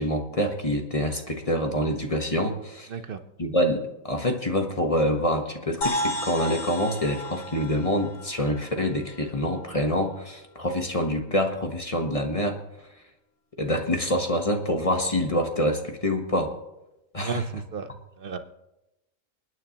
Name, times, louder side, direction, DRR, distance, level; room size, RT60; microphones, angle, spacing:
voice 1, 0.0-2.9 3.4-12.6 13.6-16.5 17.1-17.5, equal, 30° left, 4 dB, 1.1 m, -26 dB
sound 1, 5.8-9.6, left 1 dB, 75° left, 2.5 m, -33 dB
voice 2, 17.2-17.9 18.2-18.4, right 6 dB, 50° right, 9 dB, 0.9 m, -33 dB
28.5 x 9.5 x 2.9 m, 0.95 s
omnidirectional pair, 1.4 m